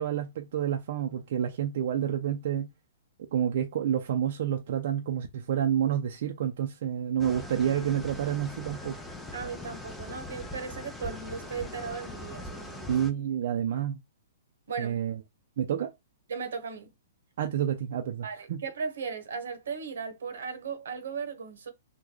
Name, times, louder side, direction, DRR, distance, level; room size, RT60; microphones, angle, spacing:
voice 1, 0.0-2.7 3.3-9.0 12.9-14.0 14.8-15.1 15.6-15.9 17.4-18.6, right 9 dB, 60° right, 0.5 m, -29 dB
sound 1, 7.2-13.1, left 1 dB, 5° left, 0.5 m, -41 dB
voice 2, 9.3-13.0 14.7-15.0 16.3-16.9 18.2-21.7, right 5 dB, 80° right, 1.0 m, -37 dB
3.1 x 2.2 x 3.7 m
hypercardioid pair, 155°, 0 cm